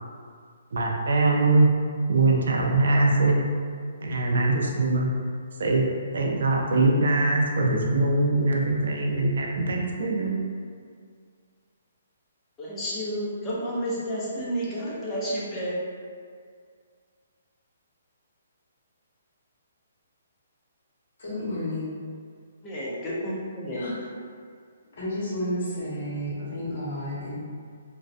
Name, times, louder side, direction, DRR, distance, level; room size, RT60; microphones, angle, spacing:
voice 1, 0.7-1.7 2.1-3.4 4.0-5.1 5.6-5.8 6.1-10.4, right 2 dB, 65° right, 0 dB, 0.4 m, -22 dB
voice 2, 12.6-15.7 22.6-23.8, equal, 10° left, -7 dB, 0.4 m, -31 dB
voice 3, 21.2-21.9 23.7-24.0 25.0-27.4, left 1 dB, 50° left, -8 dB, 1.0 m, -31 dB
2.5 x 2.0 x 2.4 m, 2.1 s
hypercardioid pair, 175°, 0 cm